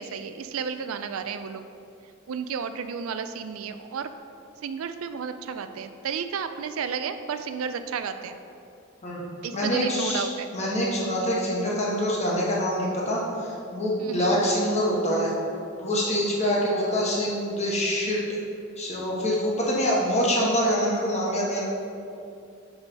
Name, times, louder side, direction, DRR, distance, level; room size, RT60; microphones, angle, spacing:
voice 1, 0.0-1.6 2.3-4.1 4.6-8.4 9.4-10.5 14.0-14.4 16.4-16.7, right 6 dB, 85° right, 10 dB, 0.4 m, -32 dB
voice 2, 9.5-10.3 10.5-15.3 15.8-18.2 18.8-21.6, equal, 35° left, -4 dB, 1.3 m, -25 dB
5.2 x 4.9 x 5.2 m, 2.6 s
head